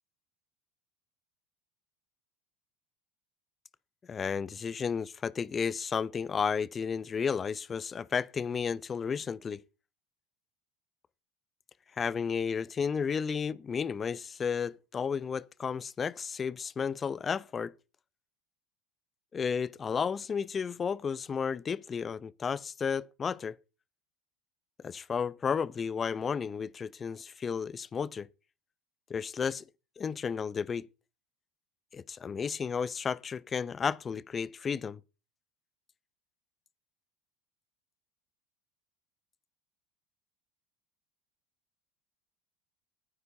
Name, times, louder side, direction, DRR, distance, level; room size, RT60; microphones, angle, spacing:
voice 1, 4.1-9.6 12.0-17.7 19.3-23.6 24.8-28.3 29.1-29.6 30.0-30.9 31.9-35.0, left 6 dB, 30° left, 0.6 m, -33 dB
21.0 x 9.7 x 2.7 m
hypercardioid pair, 90°, 0 cm